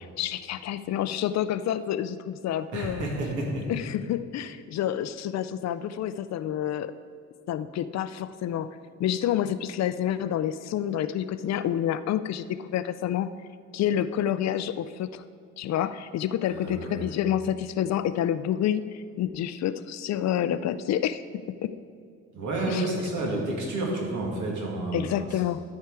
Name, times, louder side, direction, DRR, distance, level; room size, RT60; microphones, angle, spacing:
voice 1, 0.0-3.1 3.7-6.9 7.5-8.7 9.0-13.3 13.7-15.2 15.6-21.2 21.6-21.7 22.7-22.8 24.9-25.6, left 10 dB, 60° left, 13 dB, 0.4 m, -28 dB
voice 2, 2.7-3.7 16.5-17.1 22.3-25.4, right 2 dB, 75° right, -2 dB, 2.2 m, -30 dB
12.5 x 4.7 x 4.7 m, 2.3 s
cardioid pair, 90°, 30 cm